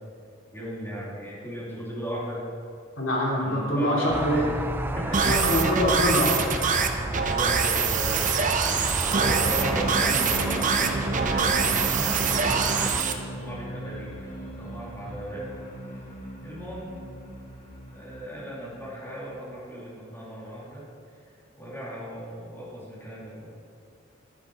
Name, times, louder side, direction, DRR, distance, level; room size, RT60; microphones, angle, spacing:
voice 1, 0.5-2.4 3.4-4.5 4.9-5.3 5.9-8.2 9.1-12.4 12.6-15.4 16.4-16.9 17.9-20.9 21.6-23.5, equal, 10° left, -8 dB, 3.1 m, -37 dB
voice 2, 3.0-4.4 5.1-6.3, equal, 80° left, -5 dB, 2.9 m, -24 dB
sound 1, 4.1-13.0, right 2 dB, 10° right, 0.4 m, -33 dB
sound 2, 5.1-13.1, right 5 dB, 40° right, 0.7 m, -24 dB
sound 3, 9.8-19.4, right 1 dB, 45° left, 1.4 m, -39 dB
10.5 x 9.8 x 4.9 m, 2.3 s
head